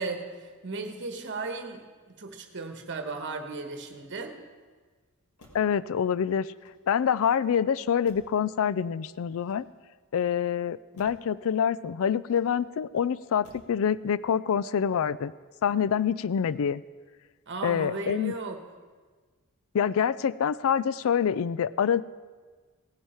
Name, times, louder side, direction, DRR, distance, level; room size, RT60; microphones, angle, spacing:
voice 1, 0.0-1.8 2.2-4.4 17.5-18.6, right 3 dB, 55° right, 6 dB, 1.3 m, -35 dB
Motor vehicle (road), 3.7-4.5 5.3-5.8 6.5-7.2 8.0-8.5 9.3-10.0 10.9-11.3 12.2-12.8 13.4-13.8 14.2-14.6, left 1 dB, 90° left, 1.9 m, -58 dB
voice 2, 5.5-6.5 6.9-9.7 10.1-15.3 15.6-16.8 17.6-18.3 19.7-22.0, left 8 dB, 65° left, 18 dB, 0.4 m, -26 dB
17.0 x 10.0 x 4.4 m, 1.4 s
head